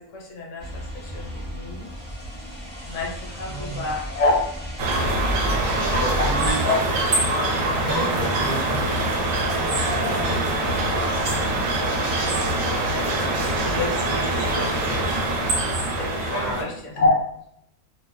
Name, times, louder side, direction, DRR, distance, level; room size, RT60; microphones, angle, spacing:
voice 1, 0.1-1.9 2.9-4.4 6.2-6.3 6.6-6.7 9.9-10.7 10.9-11.0 12.6-15.1 16.0-17.1, left 2 dB, 60° left, -2 dB, 1.0 m, -28 dB
sound 1, 0.6-6.5, equal, 25° left, 0.6 m, -33 dB
voice 2, 3.4-3.8 5.4-6.6 7.4-7.5 7.7-9.0 10.1-10.4 11.8-11.9 16.3-16.7, right 1 dB, 15° right, -10 dB, 0.8 m, -31 dB
sound 2, 4.8-16.6, right 2 dB, 70° right, 0.9 m, -24 dB
2.6 x 2.0 x 2.3 m, 0.73 s
omnidirectional pair, 1.5 m